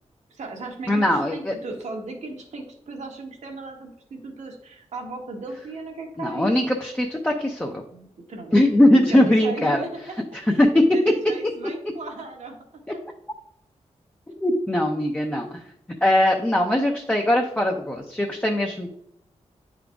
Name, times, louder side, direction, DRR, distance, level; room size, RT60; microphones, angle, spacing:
voice 1, 0.3-6.5 7.9-10.2 10.4-12.5 18.8-18.9, right 3 dB, 80° right, 1 dB, 1.5 m, -36 dB
voice 2, 0.9-1.5 6.2-7.8 8.5-9.8 10.6-10.7 14.4-15.6 16.0-18.9, left 1 dB, 10° left, 0 dB, 0.6 m, -20 dB
9.6 x 3.8 x 3.5 m, 0.72 s
wide cardioid pair, 120°, 12 cm